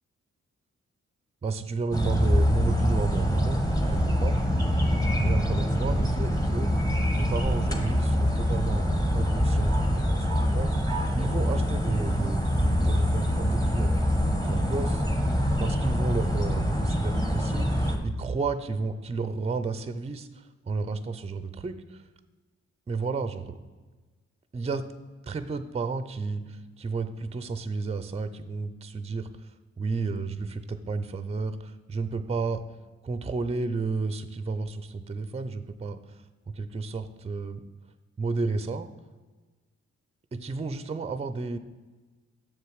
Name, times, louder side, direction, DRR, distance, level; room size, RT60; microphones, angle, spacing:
voice 1, 1.4-3.6 3.9-4.4 5.2-6.7 7.2-10.7 11.1-13.9 14.4-15.0 15.6-20.3 20.7-21.8 22.9-23.6 24.5-24.8 25.3-26.5 26.8-29.3 29.8-31.6 31.9-32.6 33.0-36.0 36.6-37.6 38.2-38.9 40.3-41.6, right 4 dB, 20° right, 12 dB, 0.5 m, -31 dB
sound 1, 1.9-18.0, equal, 10° left, 1.2 m, -25 dB
6.8 x 6.8 x 4.8 m, 1.3 s
cardioid pair, 70°, 29 cm